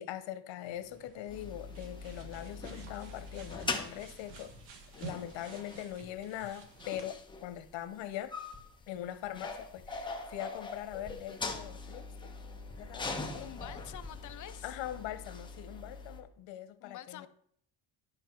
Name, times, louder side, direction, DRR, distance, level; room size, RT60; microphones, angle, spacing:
voice 1, 0.0-4.5 5.0-8.4 8.9-12.3 12.8-13.5 14.6-17.3, left 12 dB, 90° left, 1.0 m, -42 dB
sound 1, 0.7-7.1, right 5 dB, 85° right, 1.6 m, -51 dB
sound 2, 1.3-16.2, left 3 dB, 10° left, 1.0 m, -42 dB
voice 2, 13.3-14.8 16.8-17.3, left 12 dB, 45° left, 0.5 m, -47 dB
11.0 x 5.3 x 4.5 m
cardioid pair, 145°, 44 cm